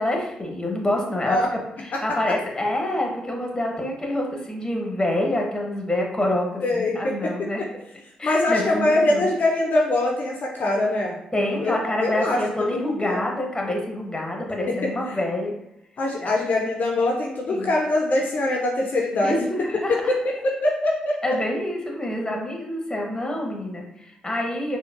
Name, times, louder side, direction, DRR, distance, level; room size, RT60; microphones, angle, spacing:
voice 1, 0.0-1.4 1.8-7.6 8.2-9.3 11.3-15.5 16.2-16.3 17.5-17.7 19.2-20.0 21.2-24.8, left 1 dB, 20° left, 0 dB, 1.0 m, -27 dB
voice 2, 6.6-7.5 8.2-13.3 14.7-14.8 15.1-15.2 16.0-19.4 20.1-21.2, left 2 dB, 55° left, -1 dB, 0.5 m, -23 dB
4.4 x 2.1 x 2.5 m, 0.82 s
hypercardioid pair, 45°, 3 cm